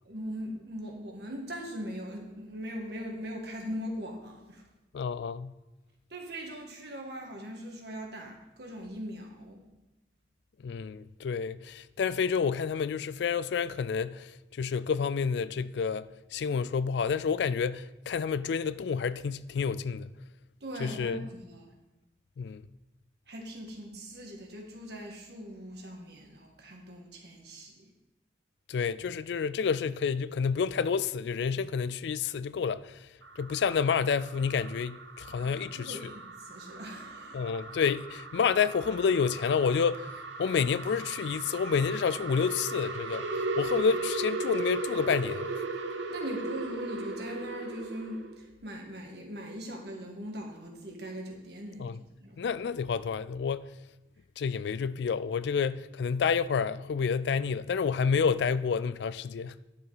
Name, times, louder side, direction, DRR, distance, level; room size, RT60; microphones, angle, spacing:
voice 1, 0.0-4.6 6.1-9.7 20.6-21.7 23.3-27.9 35.4-37.4 46.1-52.5, equal, 65° right, 1.7 m, -40 dB
voice 2, 4.9-5.5 10.6-20.1 20.8-21.3 22.4-22.6 28.7-33.0 33.4-36.1 37.3-40.1 40.4-43.3 43.6-45.6 51.8-52.0 52.4-53.7 54.4-59.6, left 6 dB, 70° left, 0.3 m, -29 dB
sound 1, 33.2-48.4, right 3 dB, 90° right, 0.9 m, -37 dB
10.5 x 6.9 x 4.0 m
head